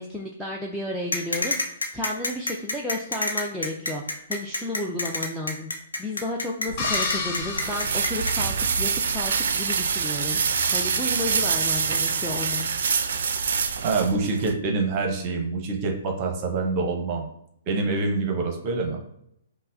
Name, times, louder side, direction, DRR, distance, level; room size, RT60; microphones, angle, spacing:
voice 1, 0.0-5.7 6.0-12.7, left 1 dB, 5° left, -3 dB, 0.4 m, -32 dB
sound 1, 1.1-8.3, left 2 dB, 80° left, 0.6 m, -28 dB
sound 2, 6.7-14.5, right 6 dB, 60° right, 0.4 m, -26 dB
sound 3, 6.8-9.0, left 4 dB, 40° left, 0.7 m, -31 dB
voice 2, 13.8-17.3 17.7-19.0, right 3 dB, 35° right, 2 dB, 0.7 m, -26 dB
5.5 x 2.0 x 2.5 m, 0.75 s
figure-of-eight pair, 125°, 0 cm